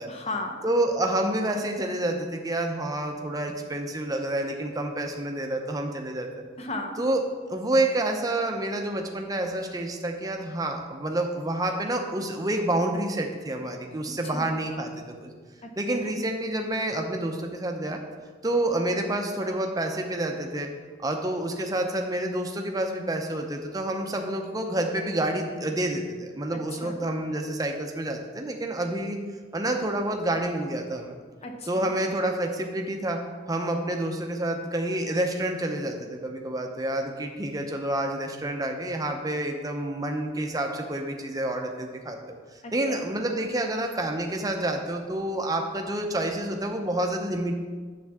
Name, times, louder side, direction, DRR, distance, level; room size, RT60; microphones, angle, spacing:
voice 1, 0.1-0.6 6.6-7.0 14.3-14.5 15.6-16.0 26.7-27.0 31.4-31.9 42.6-43.1, left 2 dB, 35° left, 4 dB, 0.9 m, -36 dB
voice 2, 0.6-6.3 7.0-7.2 7.5-14.9 15.2-15.3 15.8-18.0 18.4-20.7 21.0-29.2 29.5-31.2 31.7-33.2 33.5-47.6, right 1 dB, 20° right, 3 dB, 0.7 m, -28 dB
9.0 x 7.1 x 3.6 m, 1.5 s
head